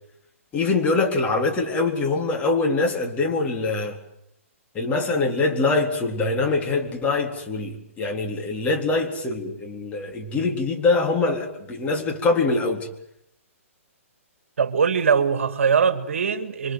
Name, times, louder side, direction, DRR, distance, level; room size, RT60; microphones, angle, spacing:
voice 1, 0.5-4.0 4.7-12.9, left 3 dB, 15° left, 3.9 m, -23 dB
voice 2, 14.6-16.7, right 6 dB, 60° right, 2.3 m, -21 dB
27.5 x 24.5 x 7.9 m
figure-of-eight pair, 125°, 8 cm